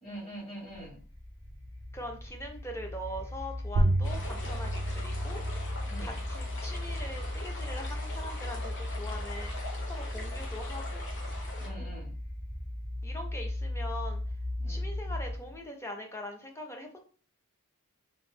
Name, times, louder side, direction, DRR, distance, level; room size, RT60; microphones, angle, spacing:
voice 1, 0.0-1.0 5.9-6.1 11.6-12.1 14.6-14.8, right 1 dB, 30° left, -6 dB, 1.5 m, -43 dB
sound 1, 0.7-15.6, left 1 dB, 70° left, 1.2 m, -37 dB
voice 2, 1.9-5.4 6.0-9.5 9.8-11.0 13.0-14.2 14.7-17.1, left 1 dB, 10° left, 3 dB, 0.5 m, -42 dB
sound 2, 3.8-8.8, right 1 dB, 75° right, 0.4 m, -33 dB
sound 3, 4.0-11.7, left 2 dB, 55° left, 0.9 m, -43 dB
2.9 x 2.1 x 3.6 m, 0.41 s
head